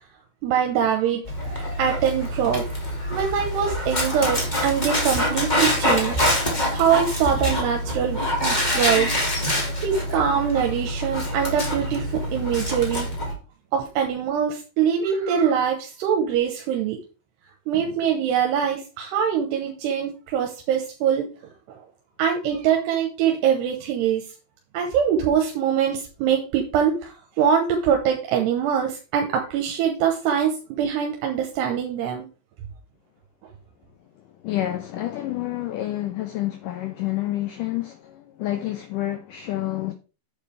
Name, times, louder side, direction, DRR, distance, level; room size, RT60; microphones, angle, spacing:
voice 1, 0.4-2.7 3.1-6.2 6.7-9.1 9.8-13.3 13.7-17.0 17.7-21.5 22.2-24.2 24.7-32.3, right 8 dB, 80° right, 3.2 m, -23 dB
Dog, 1.3-13.3, left 1 dB, 20° left, 1.3 m, -25 dB
voice 2, 34.2-39.9, left 14 dB, 90° left, 1.8 m, -29 dB
9.2 x 8.0 x 3.4 m
omnidirectional pair, 4.8 m